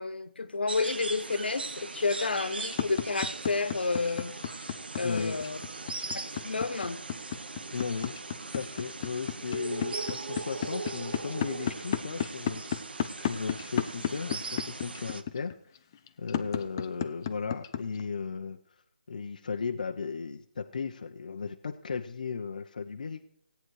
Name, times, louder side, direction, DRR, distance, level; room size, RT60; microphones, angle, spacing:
voice 1, 0.0-4.3 4.9-7.0, left 3 dB, 80° left, 11 dB, 1.5 m, -31 dB
sound 1, 0.7-15.2, right 3 dB, 75° right, 1.3 m, -39 dB
sound 2, 2.4-18.0, left 9 dB, 20° left, 0.6 m, -32 dB
voice 2, 5.0-5.4 7.7-8.2 8.5-15.6 16.2-18.6 19.1-23.2, left 5 dB, 50° left, 4 dB, 0.9 m, -36 dB
16.5 x 9.3 x 4.8 m, 0.69 s
hypercardioid pair, 170°, 5 cm